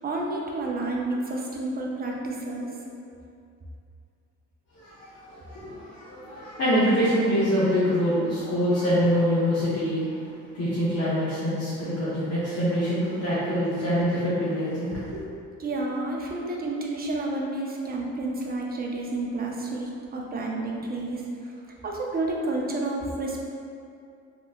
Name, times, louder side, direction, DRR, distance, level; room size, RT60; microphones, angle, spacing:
voice 1, 0.0-2.7 15.6-21.5 21.8-23.4, right 2 dB, 30° right, -1 dB, 0.5 m, -30 dB
voice 2, 4.8-10.0 10.5-15.2, equal, 55° left, -11 dB, 0.9 m, -25 dB
3.3 x 2.9 x 2.4 m, 2.5 s
cardioid pair, 90°, 30 cm